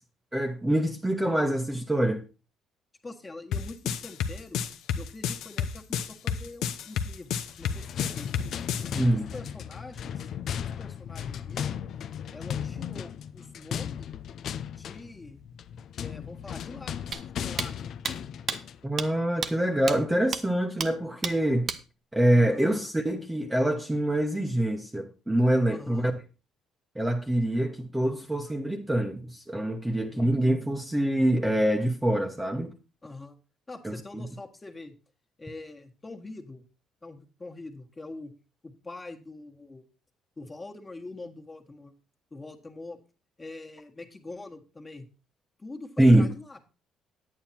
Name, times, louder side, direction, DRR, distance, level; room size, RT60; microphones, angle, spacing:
voice 1, 0.3-2.2 8.9-9.3 18.8-21.7 22.1-26.2 26.9-32.7 33.8-34.3 46.0-46.3, right 1 dB, 10° right, 1.1 m, -25 dB
voice 2, 3.0-4.6 5.0-8.3 8.8-11.7 12.3-14.1 14.8-15.5 16.0-17.8 22.3-22.8 25.7-26.1 29.9-30.3 33.0-33.3 33.7-34.9 35.4-36.6 37.0-38.3 38.6-39.8 40.4-41.9 42.3-43.0 43.4-45.0 45.6-46.6, left 2 dB, 20° left, 1.7 m, -44 dB
sound 1, 3.5-8.9, left 8 dB, 75° left, 0.9 m, -30 dB
sound 2, 7.4-18.8, left 8 dB, 60° left, 0.6 m, -36 dB
sound 3, 17.1-17.2 17.6-17.7 18.0-18.1 18.5-18.6 19.0-19.1 19.4-19.5 19.9-20.0 20.3-20.4 20.8-20.9 21.2-21.3 21.7-21.8, right 6 dB, 45° right, 1.0 m, -30 dB
9.6 x 9.0 x 4.3 m
cardioid pair, 110°, 0 cm